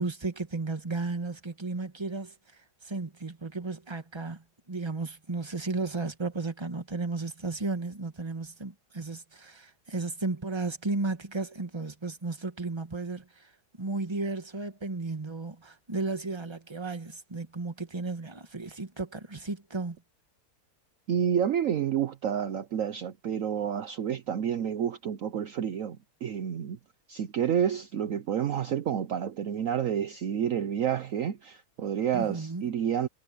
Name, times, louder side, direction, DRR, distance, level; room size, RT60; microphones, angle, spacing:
voice 1, 0.0-20.0 32.1-32.7, right 3 dB, 15° right, 1.6 m, -34 dB
voice 2, 21.1-26.8 27.1-33.1, right 9 dB, 60° right, 1.1 m, -29 dB
omnidirectional pair, 1.7 m